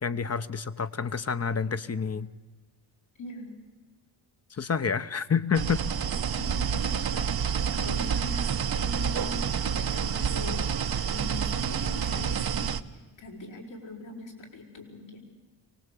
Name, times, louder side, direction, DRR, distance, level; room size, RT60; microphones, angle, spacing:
voice 1, 0.0-2.3 4.5-5.8, left 6 dB, 35° left, 12 dB, 0.9 m, -28 dB
voice 2, 3.2-3.5 6.3-10.6 11.1-12.7 13.2-15.3, left 2 dB, 85° left, -2 dB, 5.4 m, -41 dB
sound 1, 5.5-12.8, right 7 dB, 55° right, 1.0 m, -28 dB
24.0 x 18.5 x 8.5 m, 1.3 s
cardioid pair, 75°, 43 cm